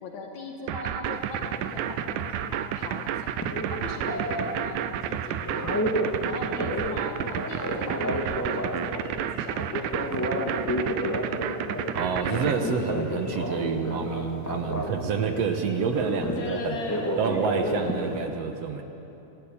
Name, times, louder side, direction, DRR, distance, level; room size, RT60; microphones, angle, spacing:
voice 1, 0.0-3.4 3.7-5.8 6.2-10.7 11.4-11.5 12.2-12.6 16.4-17.3, left 2 dB, 65° left, 2 dB, 2.8 m, -39 dB
sound 1, 0.7-12.5, right 11 dB, 90° right, 2.3 m, -31 dB
Telephone, 1.1-18.3, equal, 10° left, 0.9 m, -32 dB
voice 2, 11.9-16.8 17.2-18.8, right 6 dB, 60° right, 6 dB, 2.0 m, -28 dB
25.5 x 16.0 x 8.9 m, 3.0 s
omnidirectional pair, 3.5 m